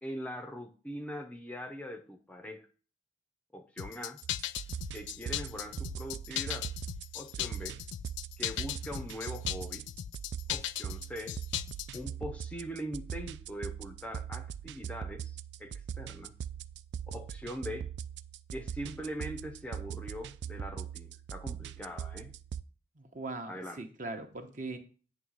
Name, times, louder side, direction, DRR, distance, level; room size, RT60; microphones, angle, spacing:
voice 1, 0.0-2.7 3.5-4.2 4.9-6.7 7.1-7.8 8.4-9.9 10.5-11.4 11.9-16.3 17.1-17.9 18.5-22.3 23.5-23.8, equal, 5° left, 0.6 m, -42 dB
sound 1, 3.8-12.0, left 12 dB, 70° left, 0.3 m, -37 dB
sound 2, 4.2-22.6, right 8 dB, 65° right, 0.3 m, -41 dB
voice 2, 23.0-24.8, right 3 dB, 40° right, 0.9 m, -40 dB
9.3 x 3.2 x 6.3 m
head